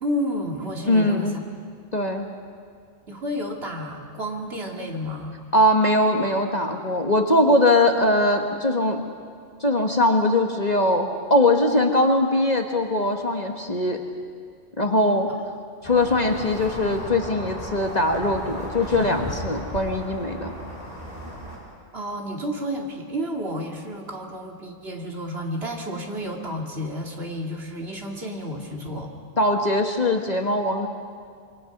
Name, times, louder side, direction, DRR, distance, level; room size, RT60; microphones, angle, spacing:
voice 1, 0.0-1.4 3.1-5.4 15.3-15.4 21.9-29.1, equal, 50° right, 0 dB, 2.6 m, -31 dB
voice 2, 0.9-1.4 1.9-2.3 5.5-9.0 9.6-14.0 14.8-15.3 15.8-20.5 29.4-30.9, left 1 dB, 35° left, 3 dB, 1.5 m, -21 dB
sound 1, 15.8-21.6, equal, 30° right, 6.8 m, -35 dB
26.5 x 23.5 x 6.0 m, 2.1 s
omnidirectional pair, 1.3 m